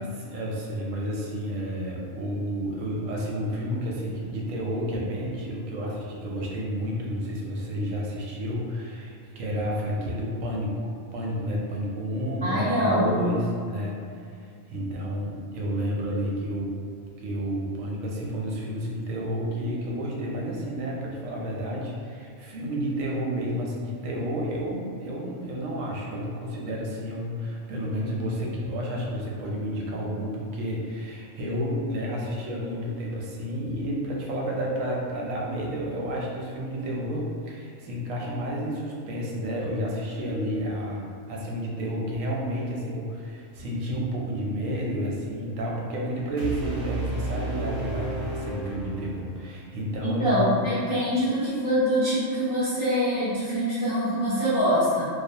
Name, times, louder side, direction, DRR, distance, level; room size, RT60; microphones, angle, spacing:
voice 1, 0.0-14.0 14.4-16.8 17.2-50.7, equal, 85° right, -3 dB, 1.0 m, -31 dB
voice 2, 12.4-13.2 50.0-55.1, equal, 40° left, -13 dB, 0.5 m, -24 dB
sound 1, 46.4-49.4, right 2 dB, 60° right, 0.7 m, -32 dB
2.3 x 2.3 x 2.7 m, 2.2 s
omnidirectional pair, 1.3 m